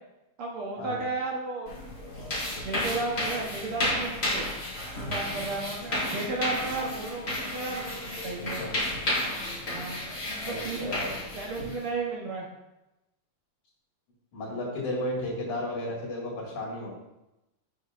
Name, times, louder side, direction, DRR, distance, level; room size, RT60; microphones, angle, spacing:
voice 1, 0.4-1.7 2.4-4.5 5.0-7.2 7.5-8.6 9.7-10.0 10.4-11.1 11.3-12.5, right 3 dB, 65° right, -2 dB, 1.5 m, -34 dB
sound 1, 1.7-11.9, left 1 dB, 20° left, 2.7 m, -32 dB
voice 2, 10.4-11.1 14.3-16.9, left 1 dB, 80° left, -4 dB, 3.5 m, -33 dB
8.2 x 6.5 x 2.5 m, 0.93 s
omnidirectional pair, 3.4 m